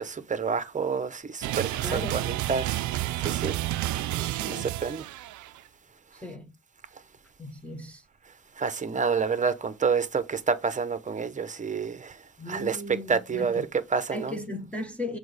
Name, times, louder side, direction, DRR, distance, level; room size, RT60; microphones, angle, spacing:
voice 1, 0.0-3.6 4.1-5.1 8.6-12.2 12.5-14.3, right 5 dB, 25° right, 0.9 m, -29 dB
sound 1, 1.4-5.6, right 15 dB, 70° right, 0.5 m, -30 dB
voice 2, 1.8-2.2 4.5-4.7 6.2-6.5 7.4-8.0 12.4-13.5 14.1-15.2, left 1 dB, 5° left, 1.1 m, -36 dB
6.1 x 4.8 x 3.4 m
cardioid pair, 90°, 30 cm